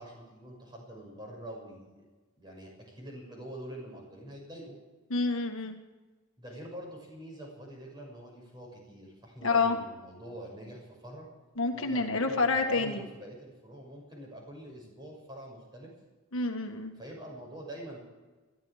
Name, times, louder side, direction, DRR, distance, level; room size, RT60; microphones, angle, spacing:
voice 1, 0.0-2.0 2.4-4.8 6.4-11.3 11.7-15.9 17.0-18.0, right 1 dB, 20° right, -1 dB, 6.4 m, -45 dB
voice 2, 5.1-5.7 9.4-9.7 11.6-13.0 16.3-16.9, left 3 dB, 65° left, 4 dB, 1.6 m, -28 dB
21.5 x 13.5 x 4.9 m, 1.2 s
head